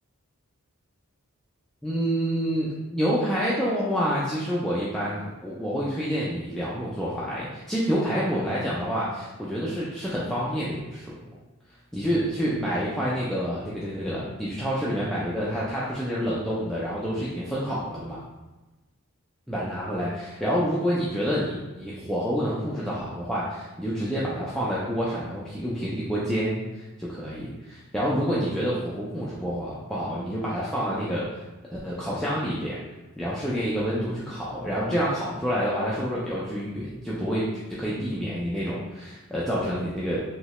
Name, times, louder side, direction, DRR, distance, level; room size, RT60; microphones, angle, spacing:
voice 1, 1.8-11.2 11.9-18.2 19.5-31.3 31.7-32.8 33.2-37.5 37.8-40.2, equal, ahead, -8 dB, 0.3 m, -28 dB
3.1 x 2.8 x 3.0 m, 1.1 s
head